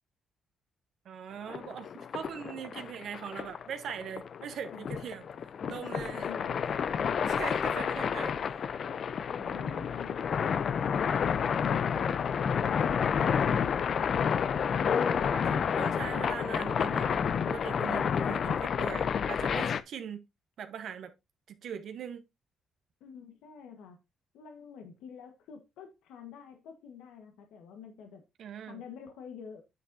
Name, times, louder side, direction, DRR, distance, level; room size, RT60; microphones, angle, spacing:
voice 1, 1.0-5.3 5.7-6.2 7.2-8.3 9.4-9.8 15.2-17.2 17.5-20.2 20.6-21.1 21.6-22.2 28.4-28.8, right 8 dB, 70° right, 1.0 m, -41 dB
sound 1, 1.5-19.8, left 7 dB, 55° left, 0.5 m, -30 dB
voice 2, 5.6-6.7 23.0-24.0 24.3-28.2 28.7-29.6, left 7 dB, 90° left, 1.3 m, -48 dB
9.2 x 7.8 x 2.7 m
cardioid pair, 90°, 0 cm